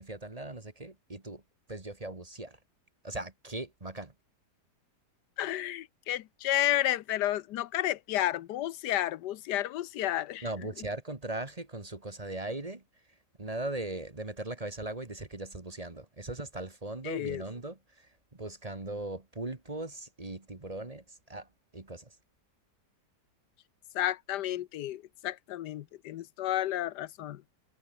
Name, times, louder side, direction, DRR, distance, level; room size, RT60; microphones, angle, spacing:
voice 1, 0.0-1.4 1.7-2.6 3.0-4.1 10.4-12.8 13.1-22.2, right 2 dB, 25° right, 1.7 m, -39 dB
voice 2, 5.4-10.4 17.0-17.4 23.9-27.4, left 13 dB, 85° left, 1.3 m, -31 dB
omnidirectional pair, 1.8 m